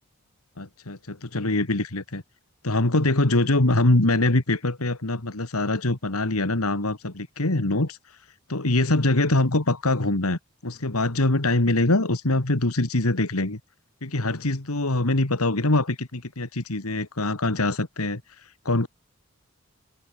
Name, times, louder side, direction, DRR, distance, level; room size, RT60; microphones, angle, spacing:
voice 1, 0.6-2.2 2.6-8.2 8.5-13.6 14.0-18.9, left 2 dB, 85° left, 2.2 m, -23 dB
head